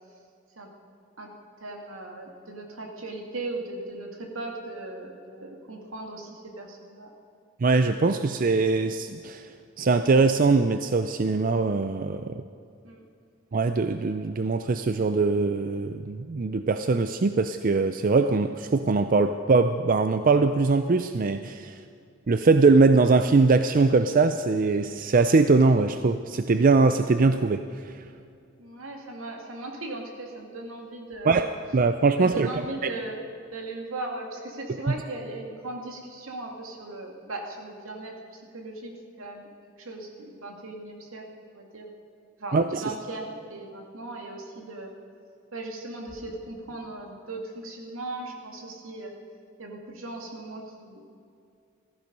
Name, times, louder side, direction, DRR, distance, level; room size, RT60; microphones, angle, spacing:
voice 1, 1.6-7.1 12.8-13.0 28.6-31.4 32.2-33.2 33.5-38.2 38.5-38.9 39.2-39.5 39.8-41.3 41.5-41.9 42.4-44.9 45.5-49.1 49.6-51.0, right 2 dB, 80° right, 1 dB, 2.4 m, -38 dB
voice 2, 7.6-9.5 9.8-12.4 13.5-21.8 22.3-28.1 31.2-32.6 34.9-35.0 42.5-42.9, right 3 dB, 40° right, 9 dB, 0.5 m, -22 dB
16.5 x 14.0 x 5.3 m, 2.4 s
head